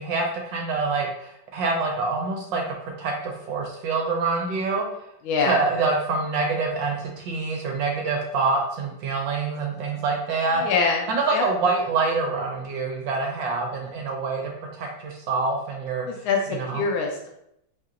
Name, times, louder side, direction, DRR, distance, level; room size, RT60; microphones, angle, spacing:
voice 1, 0.0-4.8 5.5-10.7 11.1-16.1 16.7-16.8, right 3 dB, 75° right, 1 dB, 1.3 m, -26 dB
voice 2, 5.2-5.6 10.5-11.4 16.1-17.3, left 4 dB, 90° left, 1 dB, 1.5 m, -25 dB
6.3 x 2.8 x 2.4 m, 0.77 s
omnidirectional pair, 2.2 m